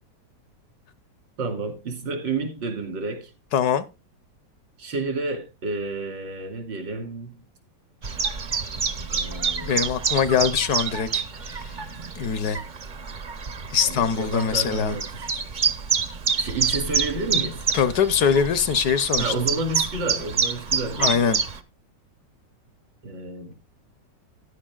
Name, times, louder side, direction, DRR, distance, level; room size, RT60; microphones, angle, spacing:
voice 1, 1.4-3.3 4.8-7.4 9.1-9.9 13.8-15.3 16.4-17.6 19.2-21.2 23.0-23.5, right 3 dB, 90° right, 3.1 m, -30 dB
voice 2, 3.5-3.8 9.6-11.2 11.6-11.7 12.2-12.6 13.7-15.0 17.7-19.3 21.0-21.4, left 7 dB, 65° left, 1.2 m, -22 dB
Chirp tweet, 8.0-21.6, right 5 dB, 65° right, 0.4 m, -28 dB
15.0 x 10.5 x 2.3 m
omnidirectional pair, 2.0 m